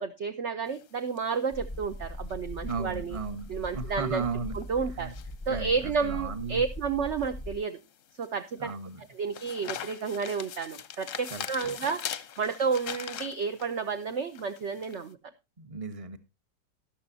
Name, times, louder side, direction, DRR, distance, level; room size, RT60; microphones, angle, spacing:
voice 1, 0.0-3.2 3.5-4.3 4.5-5.1 5.5-7.8 8.2-8.7 9.1-12.1 12.4-15.2, right 5 dB, 55° right, 8 dB, 0.8 m, -31 dB
sound 1, 0.7-15.1, left 9 dB, 55° left, 0.9 m, -43 dB
sound 2, 1.5-7.6, left 1 dB, 15° left, 1.0 m, -40 dB
voice 2, 2.6-4.6 5.0-5.1 5.5-6.6 8.6-9.0 11.3-11.8 15.6-16.2, right 4 dB, 20° right, 8 dB, 1.0 m, -35 dB
13.0 x 11.5 x 2.7 m, 0.25 s
omnidirectional pair, 2.0 m